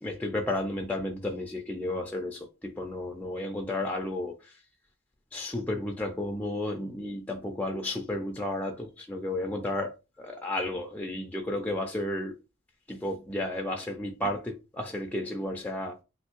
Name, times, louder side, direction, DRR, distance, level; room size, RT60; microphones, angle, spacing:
voice 1, 0.0-4.6 5.3-12.4 12.9-16.0, left 1 dB, 5° left, 0.3 m, -33 dB
3.2 x 2.6 x 2.9 m
head